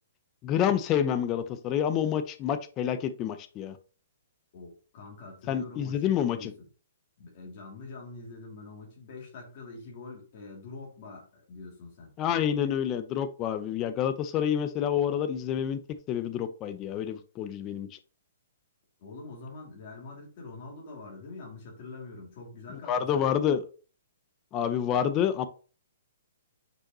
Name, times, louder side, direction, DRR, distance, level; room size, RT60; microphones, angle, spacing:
voice 1, 0.4-3.8 5.5-6.5 12.2-15.8 16.1-17.9 22.9-23.6 24.5-25.5, left 9 dB, 20° left, 10 dB, 0.5 m, -28 dB
voice 2, 4.5-6.7 7.2-12.1 19.0-23.5, left 3 dB, 35° left, -1 dB, 2.7 m, -45 dB
6.3 x 5.2 x 3.0 m, 0.37 s
hypercardioid pair, 170°, 0 cm